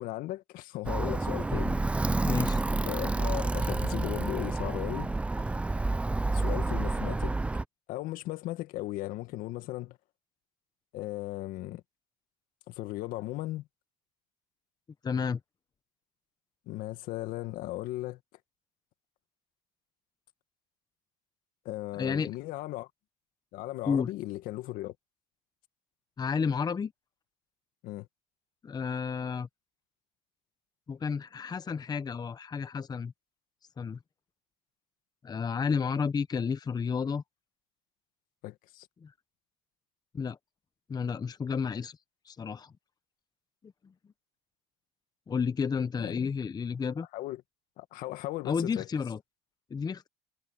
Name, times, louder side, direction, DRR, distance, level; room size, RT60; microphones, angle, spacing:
voice 1, 0.0-1.8 2.1-2.3 2.8-5.1 6.3-7.3 7.9-10.0 10.9-11.8 12.7-13.6 16.7-18.2 21.7-22.9 23.5-24.9 27.8-28.1 38.4-38.9 46.0-46.3 47.1-47.4 47.8-48.9, left 17 dB, 70° left, 1.9 m, -37 dB
Alarm, 0.9-7.6, right 2 dB, 10° right, 0.3 m, -29 dB
voice 2, 2.3-2.6 15.0-15.4 21.9-22.3 23.9-24.1 26.2-26.9 28.6-29.5 30.9-33.1 33.8-34.0 35.2-37.2 39.0-39.1 40.1-40.4 40.9-42.0 42.2-42.7 43.8-43.9 45.3-47.1 48.4-49.2 49.7-50.1, left 6 dB, 25° left, 0.9 m, -31 dB
supercardioid pair, 95°, 15 cm